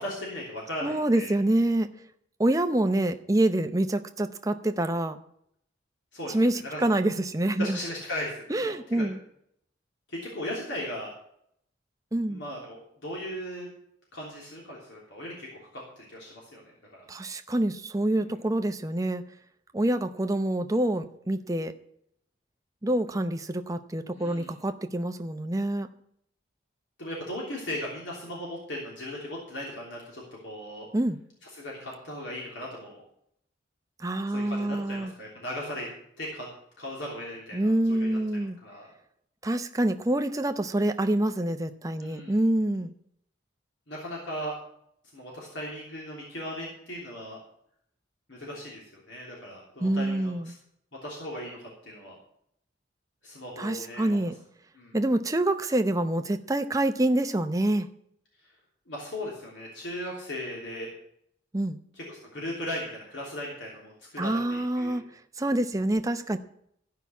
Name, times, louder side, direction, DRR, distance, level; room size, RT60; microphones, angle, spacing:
voice 1, 0.0-1.3 6.1-6.4 6.6-6.8 7.6-9.0 10.1-11.1 12.3-13.7 14.1-17.1 18.2-18.3 24.1-24.6 27.0-30.9 31.5-33.0 34.3-35.9 36.2-36.5 36.8-38.9 42.0-42.4 43.9-44.5 45.1-47.4 48.3-50.5 51.0-52.2 53.2-54.2 54.7-54.9 58.9-60.9 61.9-65.0, left 1 dB, 75° left, -3 dB, 3.3 m, -37 dB
voice 2, 0.8-1.9 2.4-5.2 6.3-7.8 8.5-9.2 12.1-12.4 17.1-19.2 19.7-21.7 22.8-25.9 30.9-31.2 34.0-35.1 37.5-38.6 39.4-42.9 49.8-50.5 53.6-54.3 54.9-57.9 61.5-61.8 64.2-65.0 65.4-66.4, right 1 dB, 15° right, 8 dB, 0.7 m, -26 dB
14.0 x 5.8 x 8.3 m, 0.70 s
head